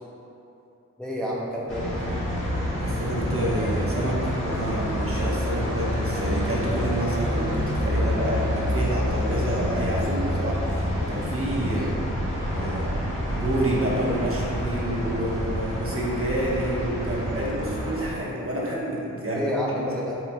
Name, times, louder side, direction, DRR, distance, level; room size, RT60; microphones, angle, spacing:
voice 1, 1.0-2.2 11.7-12.0 19.3-20.2, equal, ahead, -5 dB, 0.5 m, -29 dB
sound 1, 1.7-18.1, equal, 35° left, 1.1 m, -28 dB
voice 2, 2.8-11.9 12.5-13.0 13.3-19.4, right 1 dB, 40° right, -5 dB, 1.0 m, -28 dB
4.4 x 4.1 x 2.2 m, 2.9 s
cardioid pair, 50°, 34 cm